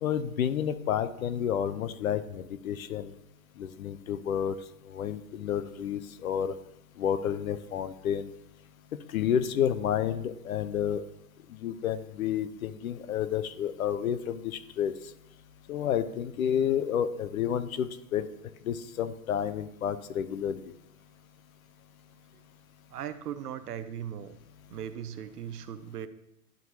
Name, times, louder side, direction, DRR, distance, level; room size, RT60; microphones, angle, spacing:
voice 1, 0.0-3.1 3.6-4.6 4.8-6.5 7.0-8.3 9.1-11.0 11.5-14.9 15.7-18.3 18.6-20.7, left 9 dB, 55° left, 13 dB, 0.6 m, -30 dB
voice 2, 22.9-24.4 24.7-26.1, right 9 dB, 70° right, 12 dB, 0.7 m, -38 dB
11.5 x 4.5 x 2.8 m, 0.82 s
hypercardioid pair, 125°, 49 cm